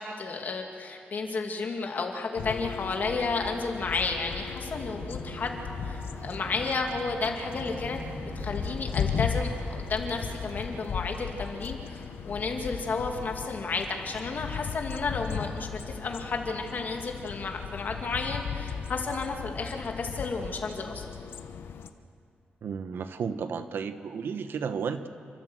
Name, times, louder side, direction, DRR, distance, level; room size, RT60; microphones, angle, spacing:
voice 1, 0.0-21.1, left 4 dB, 50° left, 3 dB, 2.4 m, -32 dB
sound 1, 2.4-21.9, left 7 dB, 85° left, 1.0 m, -37 dB
sound 2, 3.5-10.8, right 1 dB, 55° right, 7.8 m, -43 dB
voice 2, 22.6-25.1, right 6 dB, 75° right, 10 dB, 1.1 m, -33 dB
29.5 x 13.5 x 8.1 m, 2.4 s
wide cardioid pair, 150°, 4 cm